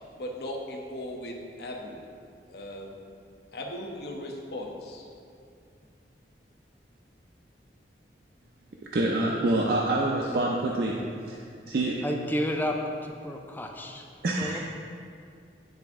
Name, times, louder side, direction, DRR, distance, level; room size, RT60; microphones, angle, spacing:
voice 1, 0.2-2.0 2.5-2.9 3.5-5.1, left 1 dB, 60° left, 1 dB, 0.8 m, -37 dB
voice 2, 8.9-10.9 11.3-11.4 11.6-12.0 14.2-14.6, right 2 dB, 55° right, -2 dB, 0.5 m, -26 dB
voice 3, 12.0-12.8 13.0-14.1 14.4-14.6, equal, 10° left, 2 dB, 0.4 m, -31 dB
9.7 x 3.4 x 3.5 m, 2.4 s
head